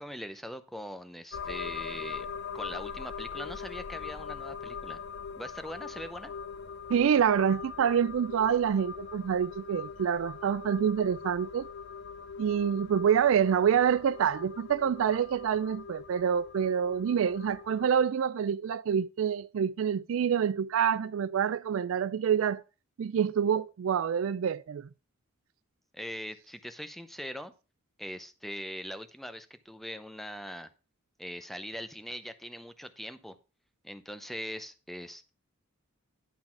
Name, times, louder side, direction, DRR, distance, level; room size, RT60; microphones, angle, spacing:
voice 1, 0.0-2.3 2.5-5.0 5.4-6.3 25.9-27.5 28.0-30.7 31.2-33.4 33.8-35.3, equal, ahead, 0.7 m, -41 dB
sound 1, 1.3-18.1, left 6 dB, 55° left, 0.5 m, -42 dB
voice 2, 6.9-11.7 12.4-22.6 23.0-24.9, right 8 dB, 70° right, 0.3 m, -27 dB
11.0 x 4.0 x 5.9 m
head